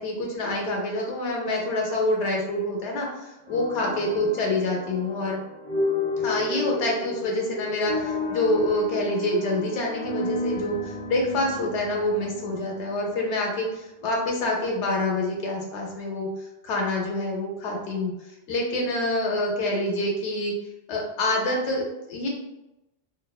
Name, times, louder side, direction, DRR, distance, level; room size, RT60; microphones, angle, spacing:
voice 1, 0.0-5.4 6.2-16.3 16.6-18.1 18.5-20.5 20.9-22.3, left 1 dB, 80° left, 0 dB, 1.0 m, -26 dB
sound 1, 3.5-13.5, left 3 dB, 15° left, 0.4 m, -32 dB
2.8 x 2.0 x 2.3 m, 0.93 s
omnidirectional pair, 1.2 m